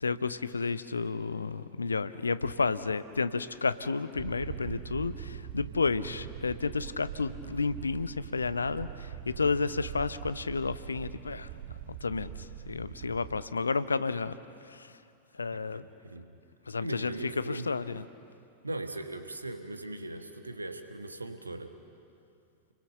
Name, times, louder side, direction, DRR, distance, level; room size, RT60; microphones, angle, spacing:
voice 1, 0.0-11.5 11.9-14.4 14.6-15.0 15.3-15.9 16.7-18.0, left 4 dB, 75° left, 14 dB, 0.7 m, -31 dB
sound 1, 4.2-13.5, right 11 dB, 50° right, 1.0 m, -43 dB
voice 2, 15.7-16.4 16.8-17.7 18.6-21.7, right 2 dB, 80° right, 8 dB, 1.6 m, -39 dB
29.0 x 22.0 x 6.7 m, 2.5 s
figure-of-eight pair, 90°, 0 cm